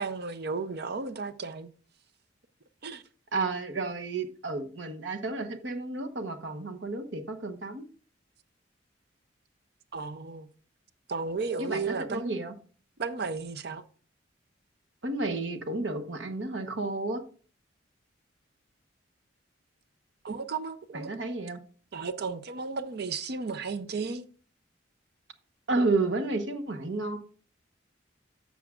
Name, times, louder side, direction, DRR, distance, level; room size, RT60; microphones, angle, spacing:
voice 1, 0.0-1.7 2.8-3.0 9.9-10.5 11.1-12.4 13.0-13.8 20.2-21.2 21.9-24.3, right 4 dB, 60° right, 0.6 m, -34 dB
voice 2, 3.3-7.9 11.6-12.5 15.0-17.2 20.9-21.6 25.7-27.2, right 3 dB, 75° right, 1.1 m, -31 dB
12.0 x 6.9 x 2.5 m
head